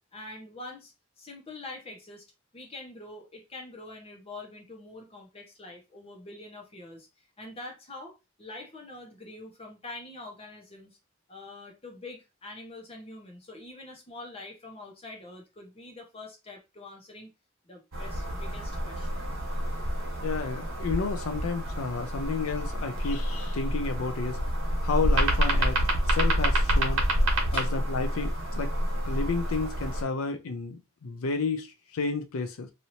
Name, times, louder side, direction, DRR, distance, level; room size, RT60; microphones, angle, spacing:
voice 1, 0.1-2.2 2.5-7.1 7.4-11.0 11.3-17.3 17.6-19.2 27.5-27.7, left 2 dB, 30° left, 1.0 m, -45 dB
sound 1, 17.9-30.0, equal, 80° right, 1.2 m, -28 dB
voice 2, 20.2-24.4 24.8-27.0 27.5-28.7 29.0-32.7, left 4 dB, 85° left, 0.5 m, -31 dB
3.0 x 2.7 x 2.7 m
head